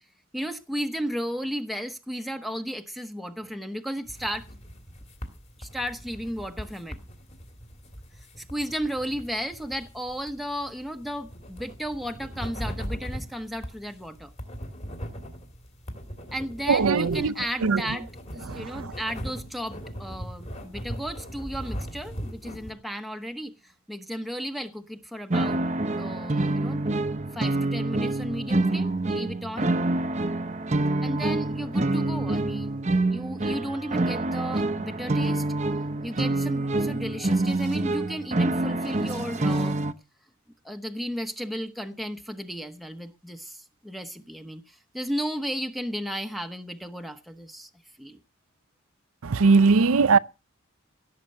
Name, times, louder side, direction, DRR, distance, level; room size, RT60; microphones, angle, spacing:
voice 1, 0.3-4.5 5.6-7.0 8.4-14.3 16.3-25.6 26.0-26.8 27.3-29.7 31.0-32.8 33.1-35.4 36.0-39.8 40.6-47.7 48.0-48.2, equal, ahead, 0.9 m, -34 dB
sound 1, 4.1-22.7, equal, 30° left, 2.6 m, -40 dB
voice 2, 16.7-17.3 17.6-17.8 18.5-18.9 49.2-50.2, right 4 dB, 80° right, 0.6 m, -20 dB
sound 2, 25.3-39.9, right 2 dB, 30° right, 0.7 m, -26 dB
16.5 x 7.5 x 6.6 m
head